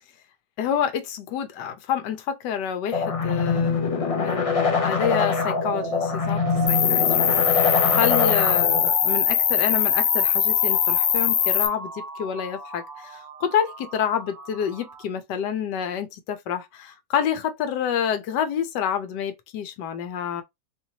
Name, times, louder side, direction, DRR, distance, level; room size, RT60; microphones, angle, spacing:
voice 1, 0.6-6.4 6.7-20.4, left 8 dB, 75° left, 1.4 m, -28 dB
sound 1, 2.9-8.9, left 5 dB, 45° left, 0.4 m, -24 dB
sound 2, 5.0-15.0, right 3 dB, 75° right, 0.3 m, -35 dB
Cricket, 6.7-11.7, left 9 dB, 90° left, 1.5 m, -21 dB
4.2 x 3.0 x 2.8 m
omnidirectional pair, 1.9 m